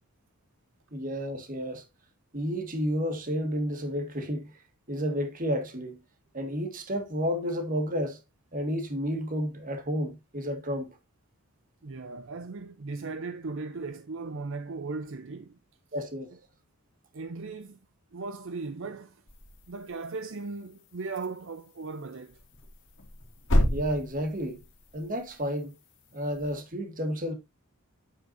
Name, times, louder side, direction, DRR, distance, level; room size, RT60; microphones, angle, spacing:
voice 1, 0.9-1.8 2.3-4.5 4.9-6.0 6.3-8.2 8.5-11.0 15.9-16.3 23.7-24.6 24.9-25.7 26.1-27.3, equal, 35° right, 1.8 m, -31 dB
voice 2, 11.8-15.6 17.1-17.8 18.1-19.2 19.7-22.4, right 3 dB, 55° right, 0.6 m, -37 dB
sound 1, 19.3-26.6, equal, 55° left, 2.3 m, -33 dB
8.7 x 8.3 x 2.6 m
head